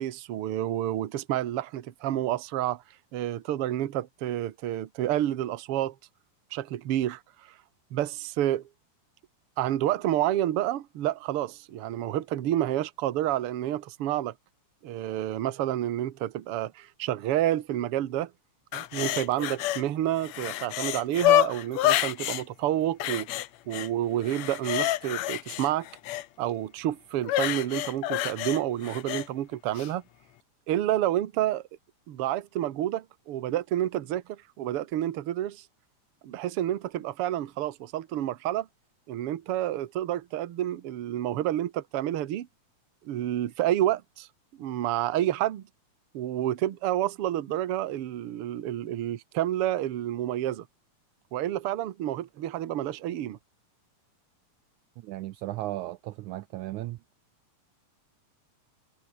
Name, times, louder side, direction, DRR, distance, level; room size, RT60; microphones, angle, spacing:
voice 1, 0.0-2.8 3.1-6.0 6.5-7.2 7.9-8.6 9.6-14.3 14.8-18.3 18.7-23.4 23.7-25.9 26.4-30.0 30.7-31.6 32.1-35.6 36.2-38.7 39.1-42.5 43.0-44.3 44.6-45.6 46.1-50.7 51.3-53.4, right 12 dB, 55° right, 1.8 m, -29 dB
sound 1, 18.7-19.8 20.2-22.4 23.0-23.9 24.2-26.3 27.2-29.3 29.8-29.9, left 14 dB, 70° left, 1.8 m, -28 dB
voice 2, 55.0-57.0, right 16 dB, 75° right, 1.9 m, -35 dB
omnidirectional pair, 3.8 m